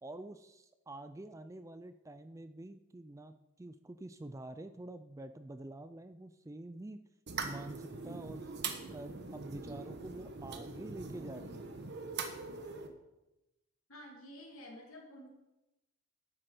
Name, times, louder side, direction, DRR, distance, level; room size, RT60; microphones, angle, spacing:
voice 1, 0.0-7.0 7.4-8.5 8.9-11.7, right 2 dB, 15° right, 10 dB, 0.3 m, -47 dB
sound 1, 7.3-12.9, right 4 dB, 50° right, 1.1 m, -42 dB
voice 2, 13.9-15.3, equal, 65° left, 0 dB, 3.0 m, -50 dB
11.5 x 8.7 x 5.0 m, 0.98 s
head